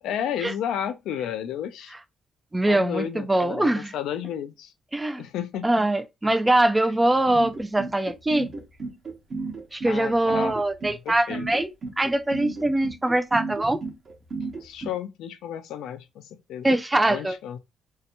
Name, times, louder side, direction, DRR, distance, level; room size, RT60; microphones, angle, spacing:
voice 1, 0.0-1.9 2.6-4.7 5.2-5.7 6.9-7.0 9.9-10.6 10.8-11.5 14.6-16.7 17.1-17.6, left 9 dB, 85° left, 0.3 m, -32 dB
voice 2, 2.5-3.9 4.9-5.2 5.6-8.5 9.7-13.8 16.6-17.3, right 1 dB, 15° right, 0.3 m, -23 dB
sound 1, 7.3-14.9, right 3 dB, 45° right, 0.9 m, -33 dB
2.7 x 2.1 x 2.7 m
cardioid pair, 90°, 0 cm